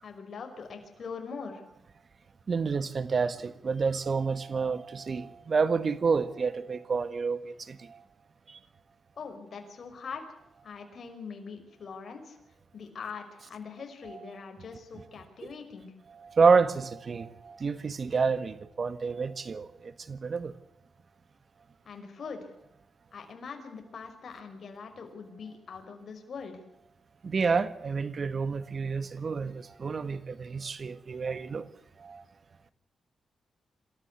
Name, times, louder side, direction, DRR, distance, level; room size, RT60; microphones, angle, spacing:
voice 1, 0.0-1.6 9.2-10.2 10.6-12.4 12.7-15.9 21.8-22.5 23.1-26.6, left 5 dB, 60° left, 5.6 m, -42 dB
voice 2, 2.5-8.0 8.5-8.6 16.2-20.5 27.2-31.7 32.0-32.2, right 5 dB, 45° right, 1.7 m, -29 dB
27.0 x 14.0 x 8.3 m
cardioid pair, 100°, 0 cm